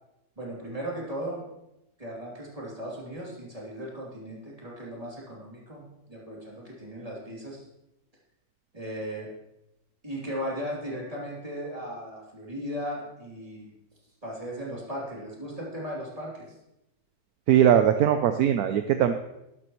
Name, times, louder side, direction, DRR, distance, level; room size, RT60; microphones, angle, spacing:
voice 1, 0.4-1.5 2.0-7.6 8.7-9.3 10.0-13.7 14.2-16.5, equal, 20° right, -4 dB, 3.0 m, -37 dB
voice 2, 17.5-19.1, right 10 dB, 70° right, 8 dB, 1.1 m, -20 dB
12.0 x 11.5 x 3.1 m, 0.90 s
omnidirectional pair, 1.7 m